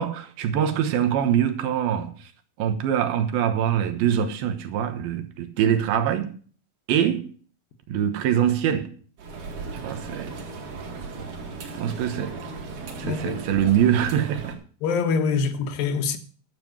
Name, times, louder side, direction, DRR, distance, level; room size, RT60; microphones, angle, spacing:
voice 1, 0.0-2.3 2.6-6.3 6.9-7.3 7.9-8.9 9.7-10.3 11.8-12.4 13.0-14.6, right 9 dB, 85° right, 3.0 m, -24 dB
sound 1, 9.2-14.5, right 4 dB, 60° right, 3.4 m, -37 dB
voice 2, 13.0-13.4 14.8-16.2, left 5 dB, 75° left, 2.7 m, -24 dB
11.5 x 7.2 x 6.1 m
omnidirectional pair, 4.2 m